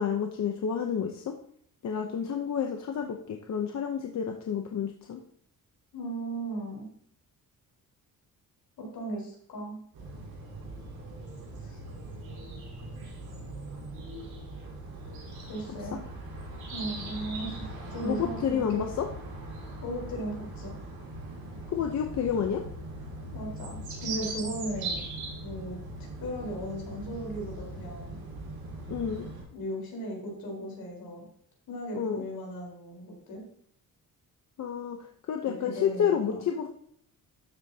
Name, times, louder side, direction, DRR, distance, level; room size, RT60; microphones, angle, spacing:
voice 1, 0.0-1.3 1.8-5.2 18.0-19.0 21.7-22.6 28.9-29.3 31.9-32.2 34.6-35.0 35.3-36.7, left 8 dB, 50° left, 3 dB, 0.8 m, -30 dB
voice 2, 5.9-6.9 8.8-9.8 11.6-11.8 15.4-16.0 16.7-18.9 19.8-20.7 23.3-25.0 25.4-25.8 26.2-28.2 29.5-31.2 31.7-33.4 35.4-36.5, right 1 dB, 70° left, -1 dB, 4.4 m, -37 dB
sound 1, 9.9-29.4, right 2 dB, 85° right, 4.2 m, -40 dB
12.5 x 8.0 x 2.8 m, 0.63 s
wide cardioid pair, 175°, 36 cm